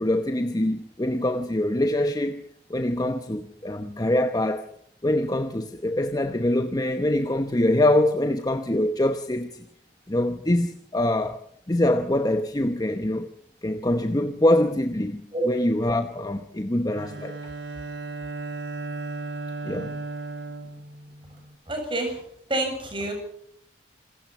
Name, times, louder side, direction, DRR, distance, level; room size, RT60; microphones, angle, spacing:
voice 1, 0.0-2.4 2.7-4.7 5.0-9.7 10.1-11.4 11.7-13.3 13.6-17.4 19.6-20.0, left 1 dB, 20° left, 0.9 m, -24 dB
Bowed string instrument, 16.9-21.5, right 2 dB, 85° right, 3.0 m, -35 dB
voice 2, 21.7-22.2 22.5-23.1, right 1 dB, 30° right, 7.7 m, -28 dB
27.5 x 16.0 x 6.0 m
head